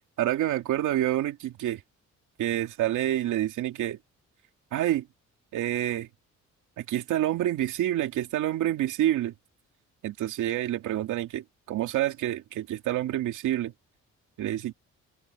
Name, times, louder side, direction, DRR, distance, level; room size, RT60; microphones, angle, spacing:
voice 1, 0.2-1.8 2.4-4.0 4.7-5.1 5.5-6.1 6.8-9.3 10.0-13.7 14.4-14.7, right 13 dB, 85° right, 2.5 m, -28 dB
open air
cardioid pair, 90°, 30 cm